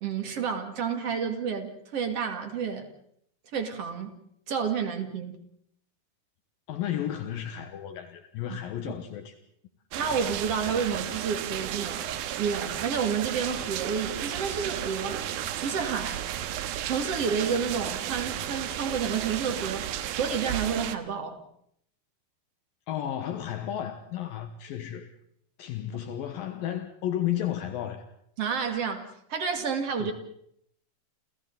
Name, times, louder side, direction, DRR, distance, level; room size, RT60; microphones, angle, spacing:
voice 1, 0.0-2.9 3.5-4.1 4.5-5.4 8.5-8.6 9.9-12.1 12.3-15.2 15.6-16.2 16.8-19.9 20.1-21.4 28.4-30.1, right 6 dB, 45° right, 3.0 m, -30 dB
voice 2, 6.7-9.3 22.9-25.1 25.6-28.0 30.0-30.1, left 11 dB, 75° left, 2.9 m, -33 dB
sound 1, 9.9-21.0, right 11 dB, 80° right, 3.0 m, -33 dB
30.0 x 28.5 x 4.1 m
omnidirectional pair, 4.3 m